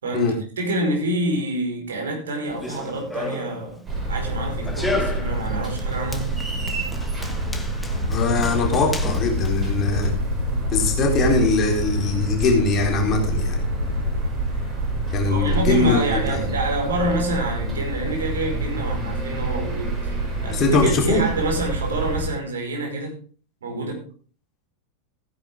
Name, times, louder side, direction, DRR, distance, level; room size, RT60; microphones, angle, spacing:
voice 1, 0.0-3.8 4.1-6.4 15.2-23.2 23.6-24.1, right 1 dB, 65° right, 5.2 m, -27 dB
Run, 2.4-10.1, left 2 dB, 5° left, 1.5 m, -34 dB
sound 1, 3.8-22.3, right 2 dB, 25° right, 6.4 m, -27 dB
sound 2, 7.9-14.3, left 5 dB, 80° left, 1.1 m, -27 dB
voice 2, 8.1-10.1 10.7-13.6 15.1-16.4 20.5-21.2, left 3 dB, 30° left, 3.9 m, -21 dB
15.5 x 10.5 x 3.7 m
figure-of-eight pair, 90°, 0 cm